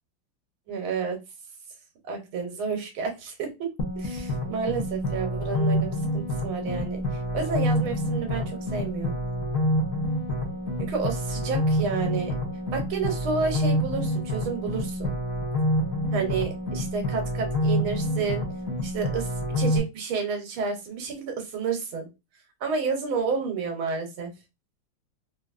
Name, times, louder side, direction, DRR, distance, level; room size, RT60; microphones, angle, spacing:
voice 1, 0.7-1.2 2.0-3.5 3.9-9.2 10.8-12.3 12.7-15.1 16.1-18.4 18.8-19.3 19.6-22.1 22.6-24.3, right 5 dB, 80° right, 4 dB, 1.7 m, -30 dB
sound 1, 3.8-19.8, equal, 50° left, 1.1 m, -27 dB
3.9 x 2.6 x 2.4 m, 0.25 s
omnidirectional pair, 2.2 m